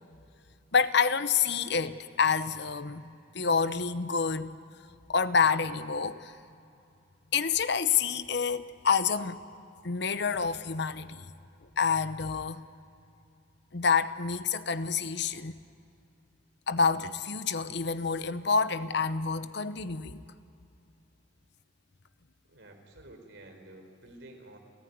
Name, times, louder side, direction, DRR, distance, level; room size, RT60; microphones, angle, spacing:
voice 1, 0.7-3.0 3.3-4.5 5.1-6.3 7.3-9.4 9.8-11.3 11.8-12.6 13.7-15.6 16.7-20.2, left 5 dB, 60° left, 0.9 m, -28 dB
voice 2, 22.4-24.6, right 1 dB, 70° right, 4.3 m, -51 dB
29.5 x 15.0 x 9.5 m
head